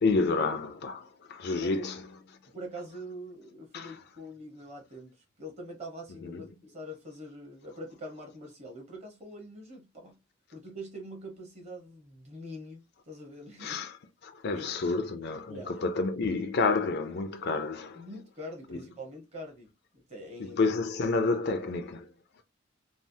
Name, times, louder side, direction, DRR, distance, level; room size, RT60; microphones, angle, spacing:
voice 1, 0.0-2.0 3.7-3.9 6.2-6.4 13.6-13.9 14.2-18.0 18.7-18.8 20.4-22.1, left 3 dB, 55° left, 0.4 m, -29 dB
voice 2, 1.6-1.9 2.5-10.2 10.5-13.8 14.5-15.1 15.5-15.9 17.9-19.7 19.9-20.6 21.0-21.1, equal, 35° right, 1.1 m, -44 dB
3.2 x 2.0 x 2.6 m
head